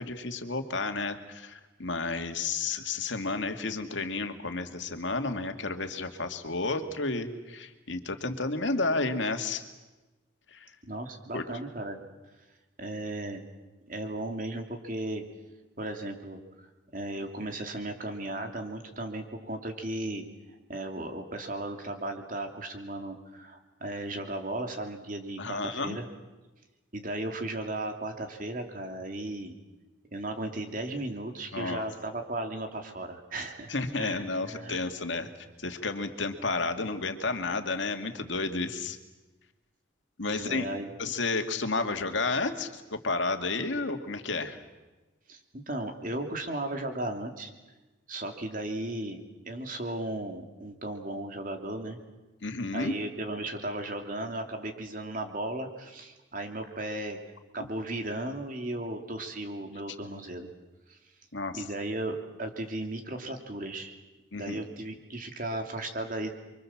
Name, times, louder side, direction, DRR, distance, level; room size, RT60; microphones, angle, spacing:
voice 1, 0.0-9.6 10.5-10.7 11.3-11.4 25.4-26.0 31.5-31.8 33.7-35.3 35.6-39.0 40.2-40.7 41.0-44.6 52.4-52.9 61.3-61.6 64.3-64.6, left 3 dB, 75° left, 6 dB, 2.2 m, -31 dB
voice 2, 10.8-12.0 12.8-13.5 13.9-15.2 15.8-16.7 16.9-26.1 26.9-29.5 30.1-34.8 40.3-40.9 45.3-47.5 48.1-52.0 52.7-57.2 57.5-60.5 60.9-61.0 61.5-64.0 64.3-66.3, right 1 dB, 45° right, 5 dB, 2.9 m, -36 dB
29.0 x 24.5 x 7.3 m, 1.1 s
head